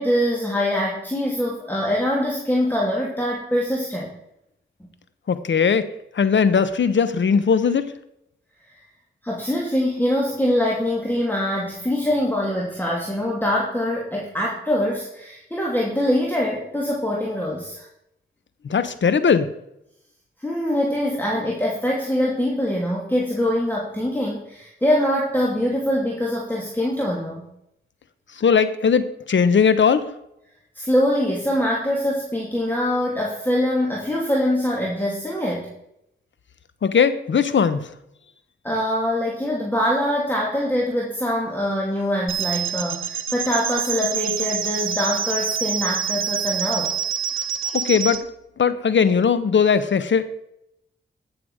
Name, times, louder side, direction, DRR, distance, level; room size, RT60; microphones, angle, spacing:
voice 1, 0.0-4.1 9.2-17.9 20.4-27.5 30.7-35.7 38.6-47.0 47.6-47.7, left 1 dB, 10° left, -3 dB, 2.8 m, -23 dB
voice 2, 5.3-5.9 6.1-7.9 18.6-19.5 28.4-30.1 36.8-37.9 47.7-48.3 48.6-50.2, left 6 dB, 65° left, 13 dB, 1.0 m, -19 dB
sound 1, 42.3-48.2, right 8 dB, 80° right, 1.0 m, -26 dB
15.0 x 7.0 x 4.9 m, 0.80 s
cardioid pair, 55°, 20 cm